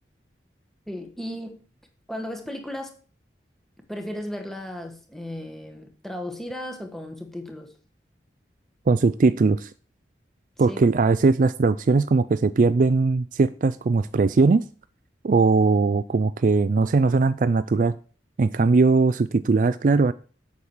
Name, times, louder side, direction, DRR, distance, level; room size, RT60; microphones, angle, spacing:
voice 1, 0.9-1.6 2.1-3.0 3.9-7.7 10.7-10.9, left 1 dB, ahead, 4 dB, 1.5 m, -35 dB
voice 2, 8.9-9.7 10.6-14.6 15.2-17.9 18.4-20.1, right 3 dB, 45° right, 14 dB, 0.4 m, -20 dB
8.3 x 6.1 x 7.2 m, 0.40 s
head